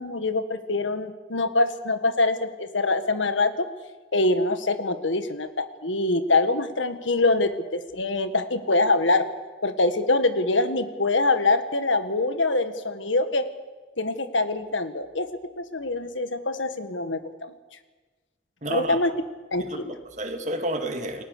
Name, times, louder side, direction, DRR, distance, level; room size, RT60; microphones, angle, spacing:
voice 1, 0.0-3.7 4.1-9.2 9.6-13.5 14.0-15.3 15.6-17.5 18.7-19.1 19.5-19.9, left 2 dB, 90° left, 10 dB, 1.8 m, -24 dB
voice 2, 18.6-19.0 19.7-21.2, right 1 dB, 40° right, 6 dB, 2.3 m, -30 dB
29.0 x 18.5 x 6.8 m, 1.3 s
head